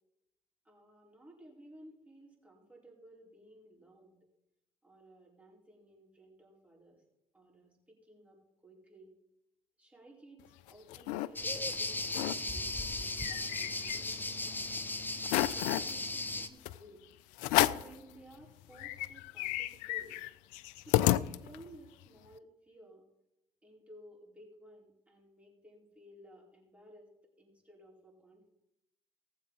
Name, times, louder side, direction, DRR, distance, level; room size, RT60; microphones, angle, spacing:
voice 1, 0.6-4.2 4.8-7.0 7.3-9.1 9.8-12.7 13.2-14.8 15.3-17.0 17.6-20.2 20.8-23.0 23.6-27.1 27.4-28.5, right 1 dB, 10° right, -3 dB, 4.5 m, -57 dB
sound 1, 10.4-11.3 11.7-11.8 12.0-12.4 12.8-14.4 14.8-14.9 15.2-15.9 16.6-16.8 17.4-18.0 18.4-18.5 18.7-21.8, left 15 dB, 65° left, 0.4 m, -32 dB
sound 2, 11.4-16.5, left 2 dB, 15° left, 1.0 m, -36 dB
18.5 x 7.6 x 4.1 m, 0.88 s
figure-of-eight pair, 50°, 14 cm